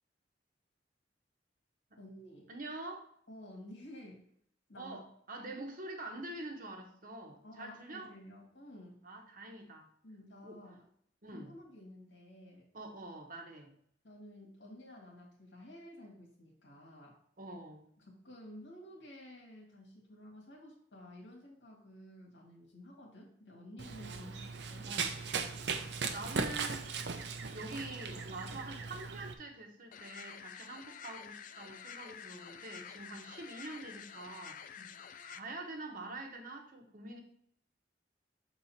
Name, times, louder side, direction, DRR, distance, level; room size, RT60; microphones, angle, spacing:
voice 1, 2.0-2.5 3.3-4.2 4.7-5.0 7.4-9.0 10.0-10.8 11.3-12.7 14.0-17.2 18.0-24.3 24.7-24.9 34.8-34.9, left 1 dB, 80° left, -2 dB, 2.0 m, -52 dB
voice 2, 2.5-3.1 4.8-8.1 9.0-9.9 10.4-10.6 11.2-11.5 12.7-13.7 17.4-17.9 24.0-25.2 26.1-27.1 27.5-34.8 35.2-37.2, right 2 dB, 50° right, 3 dB, 1.1 m, -46 dB
Run, 23.8-29.3, right 5 dB, 70° right, 0.7 m, -38 dB
sound 1, 29.9-35.4, left 8 dB, 45° left, 0.3 m, -49 dB
6.6 x 4.1 x 4.1 m, 0.66 s
head